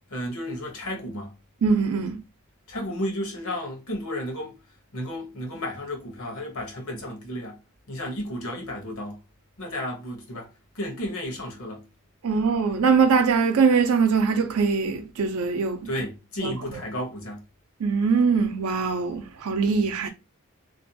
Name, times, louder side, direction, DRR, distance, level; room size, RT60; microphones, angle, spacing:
voice 1, 0.1-1.3 2.7-4.6 4.9-7.6 7.9-9.2 9.6-11.8 15.8-17.4 20.0-20.1, left 1 dB, 65° left, 0.8 m, -33 dB
voice 2, 1.6-2.2 12.2-15.8 16.4-16.5 17.8-20.1, right 5 dB, 75° right, 0.5 m, -22 dB
2.5 x 2.2 x 2.6 m
head